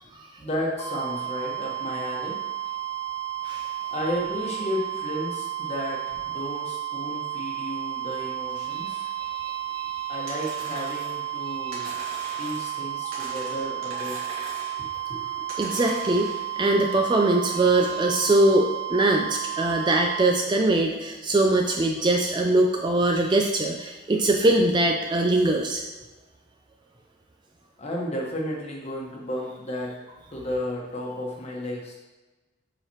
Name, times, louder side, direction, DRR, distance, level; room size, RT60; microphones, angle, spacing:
voice 1, 0.4-2.4 3.9-9.1 10.1-11.9 12.4-14.2 15.1-15.3 27.8-30.0 30.3-31.9, left 1 dB, 30° left, -2 dB, 1.2 m, -33 dB
sound 1, 0.8-20.3, right 12 dB, 5° left, 1.5 m, -32 dB
voice 2, 8.7-10.2 11.5-11.8 13.1-13.3 15.6-16.3 16.6-25.8, right 2 dB, 20° right, 2 dB, 0.4 m, -22 dB
sound 2, 10.3-11.2 11.7-12.8 13.1-14.8 15.5-16.4, right 2 dB, 90° right, 1.7 m, -41 dB
7.4 x 4.9 x 3.0 m, 1.1 s
head